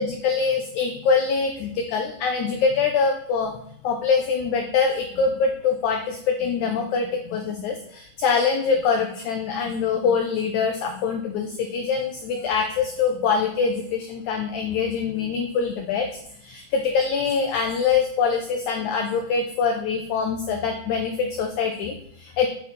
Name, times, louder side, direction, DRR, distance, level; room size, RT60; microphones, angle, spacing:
voice 1, 0.0-3.5 3.8-16.1 16.4-22.5, left 5 dB, 80° left, 4 dB, 1.7 m, -24 dB
8.2 x 6.1 x 4.3 m, 0.68 s
omnidirectional pair, 4.3 m